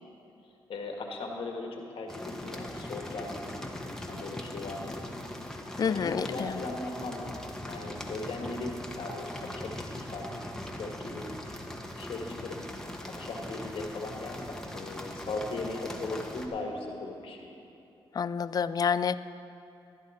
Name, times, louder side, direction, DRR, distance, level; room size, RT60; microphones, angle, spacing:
voice 1, 0.7-5.0 5.9-10.5 10.8-11.3 12.0-12.6 13.0-17.5, left 2 dB, 70° left, 1 dB, 1.7 m, -38 dB
sound 1, 2.1-16.5, left 1 dB, 5° left, 1.2 m, -40 dB
voice 2, 5.8-6.5 18.2-19.2, left 6 dB, 45° left, 15 dB, 0.4 m, -28 dB
15.0 x 10.5 x 4.3 m, 2.8 s
cardioid pair, 80°, 10 cm